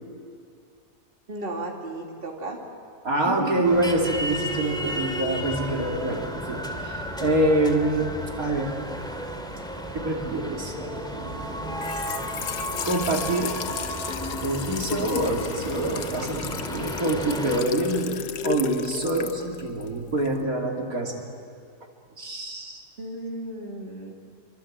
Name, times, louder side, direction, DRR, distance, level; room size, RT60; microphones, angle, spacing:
voice 1, 1.3-2.6 3.3-3.6 23.0-24.1, right 2 dB, 35° right, 0 dB, 2.7 m, -33 dB
voice 2, 3.0-8.1 8.4-8.8 9.9-11.8 12.8-13.6 14.4-18.2 18.4-21.2 22.2-22.8, right 2 dB, 65° right, 0 dB, 3.2 m, -26 dB
sound 1, 3.6-17.6, equal, 5° left, 2.3 m, -33 dB
Trickle dribble / Fill (with liquid), 11.7-20.4, left 8 dB, 85° left, 1.4 m, -33 dB
26.5 x 25.5 x 8.7 m, 2.3 s
omnidirectional pair, 1.6 m